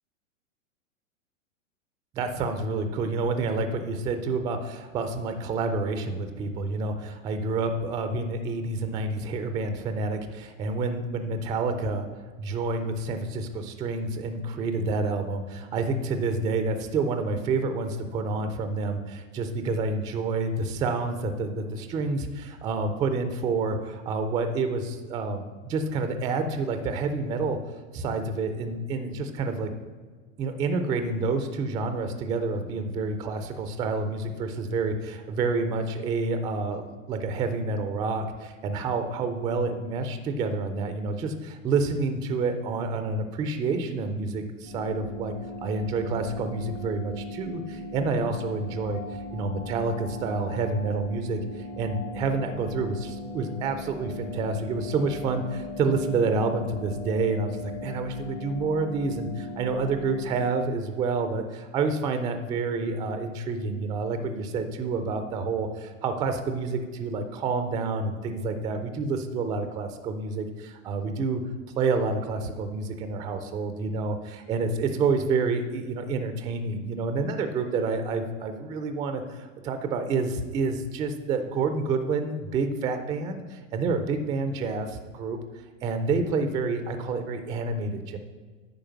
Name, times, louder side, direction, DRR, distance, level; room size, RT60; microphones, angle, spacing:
voice 1, 2.1-12.1 12.4-27.6 27.9-29.7 30.4-45.3 45.6-49.0 49.3-71.4 71.8-85.4 85.8-88.2, right 3 dB, 10° right, 8 dB, 0.3 m, -28 dB
sound 1, 44.7-60.5, left 2 dB, 80° left, 2.8 m, -38 dB
9.1 x 4.8 x 5.8 m, 1.5 s
hypercardioid pair, 110°, 40 cm